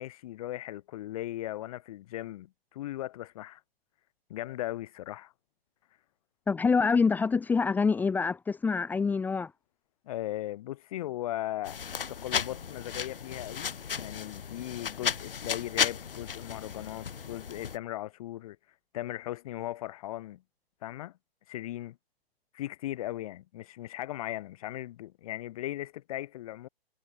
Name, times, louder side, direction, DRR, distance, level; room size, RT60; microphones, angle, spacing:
voice 1, 0.0-3.6 4.3-5.3 10.1-18.6 18.9-20.4 20.8-21.1 21.5-22.0 22.5-26.7, left 14 dB, 35° left, 7.0 m, -38 dB
voice 2, 6.5-9.5, left 5 dB, 5° left, 2.0 m, -26 dB
sound 1, 11.6-17.8, left 7 dB, 60° left, 4.6 m, -34 dB
hypercardioid pair, 145°, 31 cm